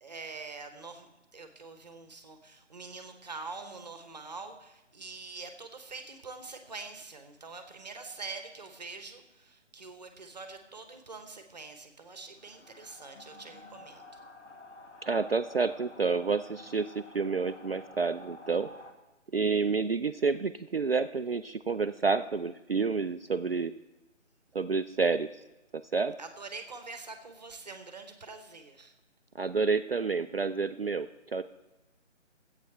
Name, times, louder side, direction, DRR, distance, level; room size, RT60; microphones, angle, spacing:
voice 1, 0.0-14.0 26.2-28.9, right 4 dB, 35° right, 7 dB, 1.1 m, -45 dB
sound 1, 12.4-18.9, left 2 dB, 70° left, 1.7 m, -50 dB
voice 2, 15.0-18.7 19.3-23.7 24.5-25.3 25.9-26.1 29.4-31.4, right 4 dB, 55° right, 10 dB, 0.4 m, -29 dB
13.5 x 8.4 x 4.5 m, 1.0 s
figure-of-eight pair, 155°, 37 cm